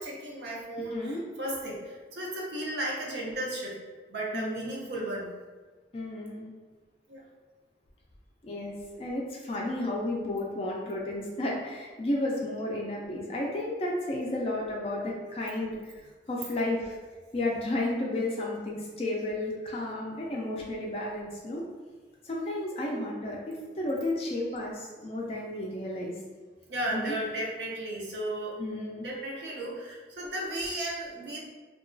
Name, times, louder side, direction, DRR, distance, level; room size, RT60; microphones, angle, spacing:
voice 1, 0.0-3.7 4.1-5.3 7.1-7.2 26.7-28.6 29.0-31.4, right 1 dB, 70° right, -3 dB, 0.6 m, -34 dB
voice 2, 0.9-1.2 4.3-4.8 5.9-6.5 8.4-17.0 17.3-21.6 22.2-26.2 26.9-27.2 28.6-29.1, left 1 dB, 30° left, -3 dB, 0.3 m, -32 dB
2.8 x 2.2 x 2.5 m, 1.4 s
head